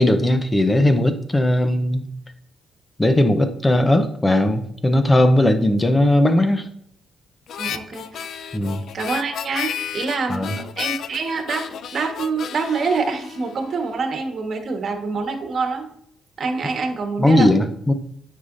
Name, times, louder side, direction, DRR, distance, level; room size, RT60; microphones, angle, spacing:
voice 1, 0.0-2.0 3.0-6.7 8.5-8.8 10.3-10.5 17.2-17.9, left 1 dB, 15° left, 9 dB, 0.8 m, -18 dB
Harmonica, 7.5-14.0, left 9 dB, 70° left, 0.4 m, -32 dB
voice 2, 7.6-8.3 8.9-15.9 16.4-17.5, right 4 dB, 50° right, 3 dB, 1.4 m, -26 dB
9.2 x 5.7 x 2.7 m, 0.70 s
cardioid pair, 90°, 0 cm